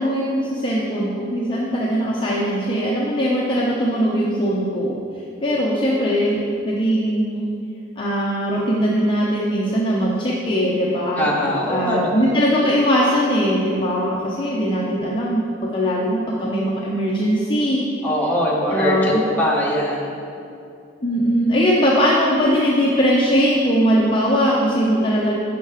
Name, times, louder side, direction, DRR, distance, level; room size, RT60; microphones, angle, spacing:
voice 1, 0.0-5.0 5.4-7.4 8.0-11.3 11.7-15.4 15.7-17.8 18.7-19.2 21.0-25.3, equal, 25° left, -5 dB, 0.8 m, -20 dB
voice 2, 11.2-12.3 18.0-20.2, equal, 10° left, -4 dB, 1.4 m, -22 dB
10.5 x 5.6 x 4.9 m, 2.6 s
head